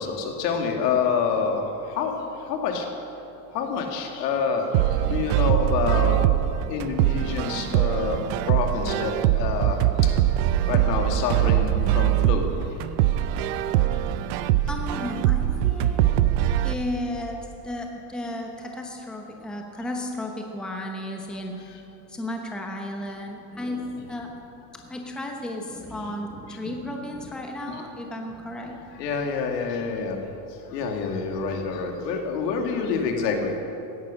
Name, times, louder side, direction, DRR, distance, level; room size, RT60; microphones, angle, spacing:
voice 1, 0.0-1.6 1.9-2.1 2.5-2.9 3.5-6.2 6.7-8.2 8.5-9.8 10.7-12.4 28.9-30.2 30.7-33.5, left 5 dB, 85° left, 3 dB, 2.4 m, -27 dB
sound 1, 4.7-16.7, right 13 dB, 50° right, 0.6 m, -22 dB
voice 2, 14.7-16.3 16.6-24.4 24.7-28.8, left 1 dB, ahead, 1 dB, 0.9 m, -34 dB
16.5 x 11.0 x 6.4 m, 2.9 s
supercardioid pair, 165°, 48 cm